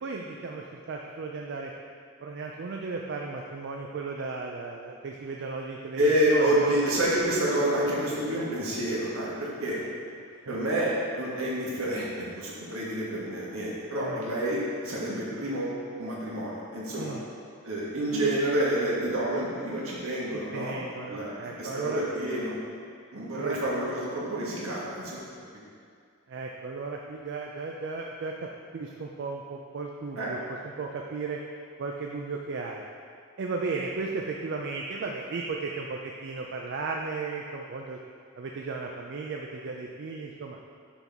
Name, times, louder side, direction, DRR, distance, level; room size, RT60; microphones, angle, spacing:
voice 1, 0.0-1.7 2.2-6.8 10.5-10.6 14.0-14.2 17.0-17.2 20.5-22.0 23.3-23.6 26.3-30.4 30.6-31.4 31.8-32.8 33.4-38.0 38.4-40.6, right 4 dB, 50° right, 0 dB, 0.4 m, -35 dB
voice 2, 6.0-9.8 10.5-17.2 17.6-21.3 21.6-22.5 23.1-25.2 30.2-30.3, right 1 dB, 70° right, -6 dB, 1.5 m, -28 dB
5.9 x 5.8 x 3.5 m, 2.2 s
head